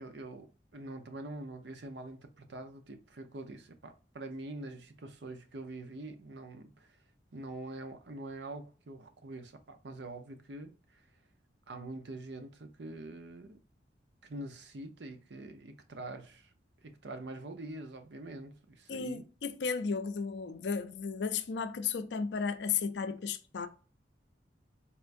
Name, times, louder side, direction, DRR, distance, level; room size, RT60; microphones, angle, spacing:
voice 1, 0.0-7.0 7.3-11.0 11.7-13.6 14.2-16.5 16.8-19.2, right 2 dB, 70° right, 0.6 m, -45 dB
voice 2, 18.9-23.7, left 5 dB, 65° left, 0.5 m, -34 dB
4.4 x 3.4 x 2.5 m
head